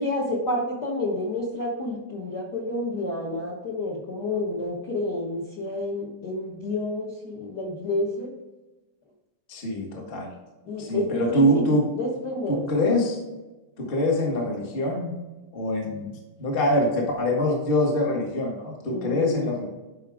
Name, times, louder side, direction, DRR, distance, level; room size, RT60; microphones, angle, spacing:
voice 1, 0.0-8.3 10.6-12.7 18.9-19.5, left 2 dB, 50° left, -4 dB, 1.3 m, -29 dB
voice 2, 9.5-10.3 10.8-11.9 12.5-13.2 13.8-15.1 15.5-19.7, left 1 dB, 30° left, 0 dB, 1.1 m, -24 dB
10.0 x 5.6 x 3.5 m, 1.1 s
omnidirectional pair, 3.4 m